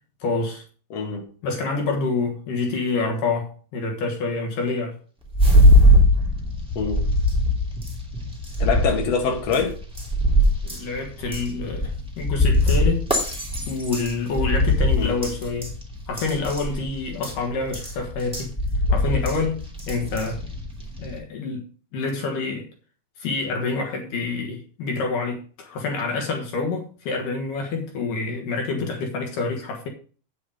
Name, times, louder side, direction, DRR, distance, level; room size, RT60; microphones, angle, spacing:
voice 1, 0.2-0.6 1.4-5.0 10.6-13.4 13.7-15.7 16.1-18.5 18.9-20.4 21.0-21.6 21.9-22.7 23.2-29.9, left 3 dB, 75° left, 2.9 m, -27 dB
voice 2, 0.9-1.2 6.7-7.0 8.6-9.8 15.0-15.2 20.0-20.1, left 5 dB, 55° left, 2.8 m, -25 dB
sound 1, 5.3-21.2, left 1 dB, ahead, 1.8 m, -21 dB
8.6 x 8.0 x 4.9 m
omnidirectional pair, 3.9 m